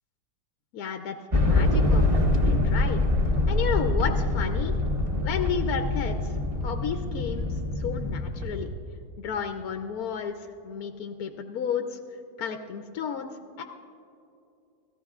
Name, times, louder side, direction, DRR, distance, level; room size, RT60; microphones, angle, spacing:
voice 1, 0.7-2.1 2.4-3.0 3.5-4.7 5.2-6.3 6.6-8.7 9.2-10.4 10.6-12.0 12.4-13.3 13.6-13.7, left 7 dB, 65° left, 6 dB, 1.0 m, -32 dB
sound 1, 1.3-8.7, left 2 dB, 25° right, 0.9 m, -25 dB
29.0 x 17.0 x 2.4 m, 2.7 s
omnidirectional pair, 2.0 m